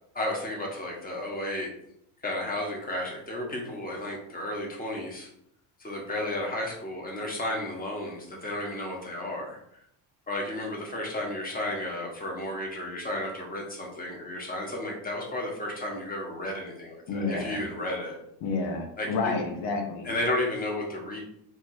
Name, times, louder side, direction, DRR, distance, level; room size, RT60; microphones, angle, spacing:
voice 1, 0.1-1.7 2.2-5.3 5.8-9.6 10.3-18.2 19.0-19.4 20.0-21.2, left 1 dB, 20° left, -1 dB, 1.2 m, -33 dB
voice 2, 17.1-17.6 18.4-20.1, left 3 dB, 80° left, 3 dB, 1.0 m, -30 dB
3.5 x 2.9 x 4.6 m, 0.74 s
cardioid pair, 130°, 41 cm